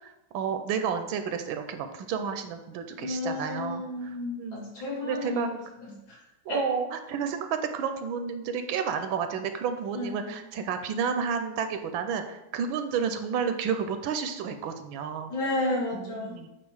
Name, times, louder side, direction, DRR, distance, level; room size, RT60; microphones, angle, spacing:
voice 1, 0.0-4.7 5.0-5.5 6.5-15.3 15.9-16.5, right 6 dB, 85° right, 8 dB, 1.4 m, -31 dB
voice 2, 3.0-5.6 5.9-6.2 6.5-6.7 9.9-10.4 15.3-16.4, left 2 dB, 75° left, -4 dB, 2.5 m, -32 dB
8.1 x 2.9 x 4.7 m, 0.93 s
omnidirectional pair, 2.1 m